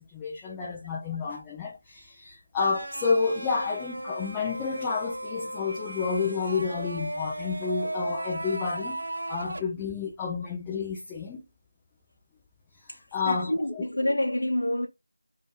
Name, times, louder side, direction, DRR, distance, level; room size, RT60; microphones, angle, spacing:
voice 1, 0.0-9.0 9.3-11.4 13.1-13.8, left 5 dB, 10° left, 0.5 m, -30 dB
sound 1, 2.6-9.6, right 1 dB, 55° right, 0.9 m, -36 dB
voice 2, 13.3-14.9, left 1 dB, 70° left, 0.8 m, -27 dB
4.8 x 2.6 x 2.3 m
figure-of-eight pair, 170°, 0 cm